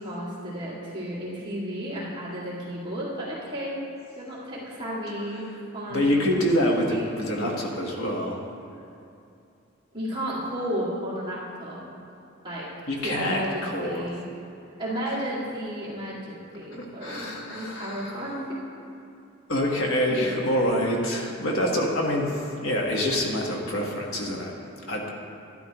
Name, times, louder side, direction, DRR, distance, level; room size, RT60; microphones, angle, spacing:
voice 1, 0.0-3.8 4.2-5.5 5.7-6.4 6.9-7.6 9.9-11.8 12.4-12.7 13.0-14.2 14.8-18.6 20.0-20.4, equal, 20° right, -8 dB, 2.3 m, -33 dB
voice 2, 5.9-8.4 12.9-14.1 16.7-18.1 19.5-24.5 24.9-25.1, equal, 70° left, -1 dB, 1.4 m, -26 dB
12.0 x 12.0 x 3.0 m, 2.6 s
head